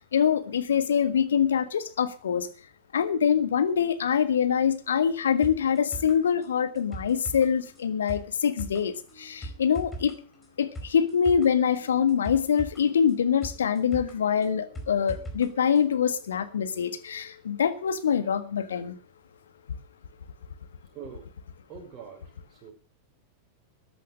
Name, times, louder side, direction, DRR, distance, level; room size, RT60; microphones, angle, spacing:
voice 1, 0.1-2.5 2.9-10.2 10.6-18.9, left 7 dB, 65° left, 11 dB, 1.6 m, -24 dB
sound 1, 5.4-15.5 15.8-15.9, right 1 dB, 15° left, 4.7 m, -41 dB
voice 2, 20.9-21.3 21.7-22.7, right 7 dB, 35° right, 2 dB, 4.8 m, -44 dB
14.0 x 10.0 x 6.5 m, 0.38 s
figure-of-eight pair, 90°, 0 cm